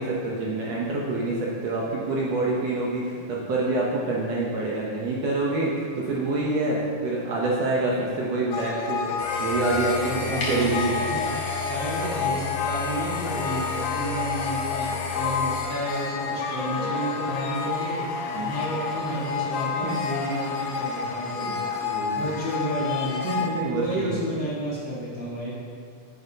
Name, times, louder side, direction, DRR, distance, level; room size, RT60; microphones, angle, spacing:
voice 1, 0.0-9.0 9.4-11.2 18.3-18.5 21.8-22.3 23.2-24.3, right 2 dB, 65° right, -4 dB, 1.9 m, -26 dB
sound 1, 8.5-23.5, left 5 dB, 80° left, 1.5 m, -30 dB
sound 2, 9.2-15.6, left 4 dB, 60° left, 2.2 m, -33 dB
voice 2, 9.8-11.2 11.5-18.1 18.4-23.3 23.7-25.6, equal, 40° left, -9 dB, 2.4 m, -31 dB
9.3 x 9.0 x 2.9 m, 2.2 s
omnidirectional pair, 3.6 m